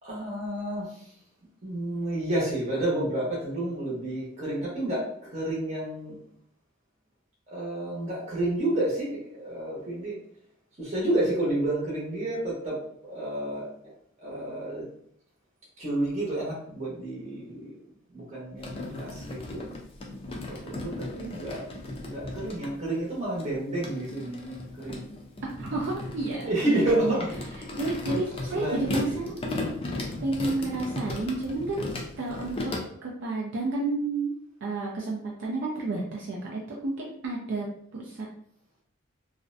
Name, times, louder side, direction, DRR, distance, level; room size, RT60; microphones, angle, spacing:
voice 1, 0.0-1.0 1.6-6.2 7.5-10.1 10.8-13.7 14.2-14.9 15.8-17.8 18.1-19.8 20.5-21.7 22.0-25.1 26.4-27.3 27.6-27.9 28.5-29.3 29.8-30.2, right 1 dB, 35° right, -6 dB, 0.8 m, -30 dB
sound 1, 18.6-22.7 23.4-32.8, left 2 dB, 25° left, 0.4 m, -36 dB
voice 2, 25.6-27.2 27.8-29.5 30.2-34.3 34.6-37.7 37.9-38.3, right 2 dB, 60° right, -2 dB, 0.4 m, -31 dB
2.5 x 2.0 x 2.5 m, 0.64 s
head